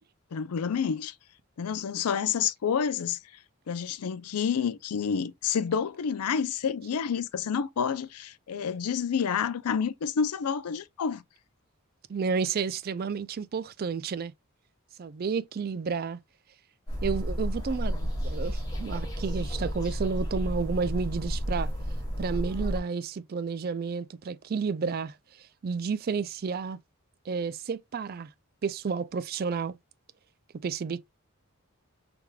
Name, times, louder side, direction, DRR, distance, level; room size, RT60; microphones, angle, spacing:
voice 1, 0.3-1.1 1.6-3.2 3.7-11.2, left 7 dB, 90° left, 0.5 m, -29 dB
voice 2, 12.1-14.3 15.0-16.2 17.0-21.7 22.2-26.8 27.3-28.3 28.6-29.7 30.6-31.0, right 5 dB, 45° right, 0.3 m, -31 dB
sound 1, 16.9-22.8, equal, 15° left, 2.3 m, -31 dB
4.8 x 3.4 x 2.2 m
head